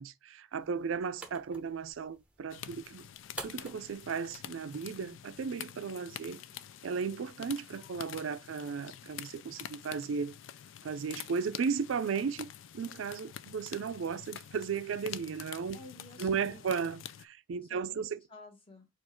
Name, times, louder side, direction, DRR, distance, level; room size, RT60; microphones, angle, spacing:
voice 1, 0.0-3.1 3.4-6.4 6.8-10.3 10.8-12.5 12.7-15.8 16.2-18.2, right 6 dB, 90° right, 0.4 m, -35 dB
sound 1, 0.5-5.5, right 2 dB, 5° right, 0.7 m, -50 dB
sound 2, 2.5-17.2, left 10 dB, 80° left, 0.4 m, -47 dB
voice 2, 15.7-16.6 17.6-18.9, left 2 dB, 30° left, 1.3 m, -53 dB
4.5 x 2.4 x 4.3 m
head